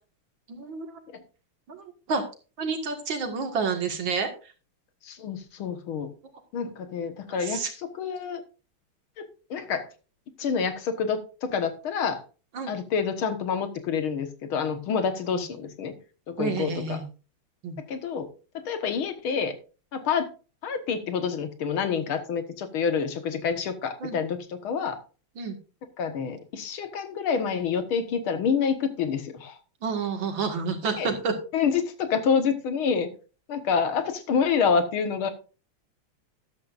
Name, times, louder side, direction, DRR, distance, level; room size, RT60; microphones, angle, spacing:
voice 1, 0.5-1.0 1.7-2.2 2.6-4.3 7.3-7.7 12.5-12.7 15.3-15.4 16.4-17.1 17.6-17.8 24.0-24.2 25.4-25.6 29.8-31.3, right 5 dB, 70° right, 5 dB, 2.6 m, -29 dB
voice 2, 5.0-6.1 6.5-8.4 9.2-9.9 10.4-12.2 12.7-15.9 16.3-17.0 17.8-18.3 18.6-19.5 19.9-20.3 20.6-25.0 26.0-29.6 31.0-31.1 31.5-33.1 33.5-35.3, left 6 dB, 90° left, 8 dB, 2.2 m, -27 dB
13.0 x 11.0 x 2.5 m, 0.34 s
omnidirectional pair, 2.2 m